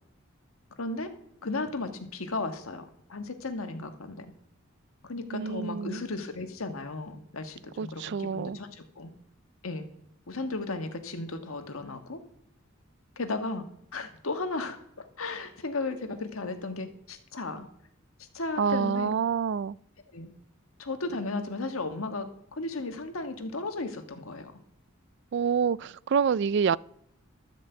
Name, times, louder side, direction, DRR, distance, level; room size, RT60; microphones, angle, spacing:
voice 1, 0.8-1.1 1.4-4.3 5.0-9.1 9.6-9.9 10.3-12.2 13.1-13.7 13.9-17.6 18.2-19.1 20.1-20.3 20.8-24.5, left 3 dB, 85° left, 1.5 m, -35 dB
voice 2, 5.3-6.0 7.8-8.6 18.6-19.8 25.3-26.8, right 6 dB, 55° right, 0.3 m, -27 dB
13.0 x 5.3 x 7.9 m
head